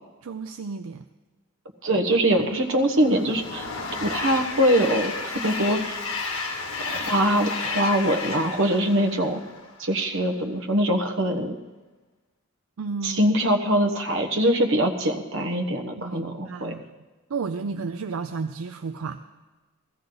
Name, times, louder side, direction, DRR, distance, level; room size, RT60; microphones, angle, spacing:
voice 1, 0.2-1.0 12.8-13.3 16.0-16.9 17.3-19.3, right 4 dB, 80° right, 8 dB, 0.5 m, -32 dB
voice 2, 1.8-3.7 4.0-6.0 6.8-9.4 9.8-11.5 13.0-16.7, equal, 65° right, 6 dB, 1.3 m, -23 dB
Train, 2.4-9.9, left 4 dB, 85° left, 1.6 m, -32 dB
16.0 x 14.0 x 3.9 m, 1.2 s
head